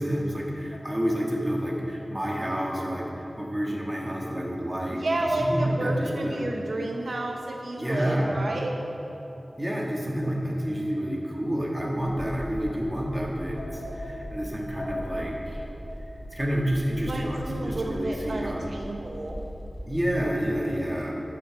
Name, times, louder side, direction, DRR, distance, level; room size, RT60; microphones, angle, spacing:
voice 1, 0.0-6.5 7.7-8.4 9.6-15.6 16.3-18.7 19.9-21.1, equal, 20° right, -2 dB, 1.9 m, -29 dB
sound 1, 0.7-3.3 3.5-17.4, left 1 dB, 80° left, 1.4 m, -44 dB
voice 2, 4.9-8.8 17.1-19.4, right 2 dB, 80° right, 1 dB, 0.7 m, -30 dB
sound 2, 12.0-20.4, equal, 45° right, 1.4 m, -40 dB
12.0 x 6.7 x 5.2 m, 2.9 s
wide cardioid pair, 65°, 0 cm